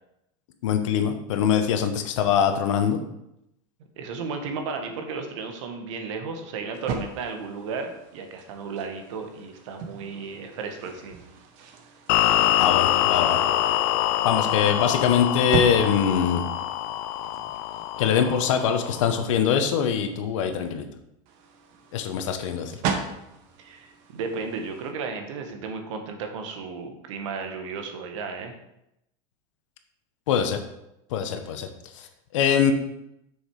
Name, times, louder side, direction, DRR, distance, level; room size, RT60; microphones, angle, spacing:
voice 1, 0.6-3.0 12.6-13.4 14.2-16.4 18.0-20.9 21.9-22.8 30.3-30.6 31.1-31.7 32.3-32.7, left 8 dB, 85° left, 7 dB, 1.2 m, -23 dB
voice 2, 4.0-11.2 23.6-28.5, right 5 dB, 75° right, 5 dB, 1.5 m, -34 dB
sound 1, 6.7-18.9 21.3-24.9, right 5 dB, 45° right, 1.1 m, -37 dB
sound 2, 12.1-19.3, left 13 dB, 45° left, 0.4 m, -25 dB
6.7 x 6.4 x 4.8 m, 0.85 s
supercardioid pair, 170°, 16 cm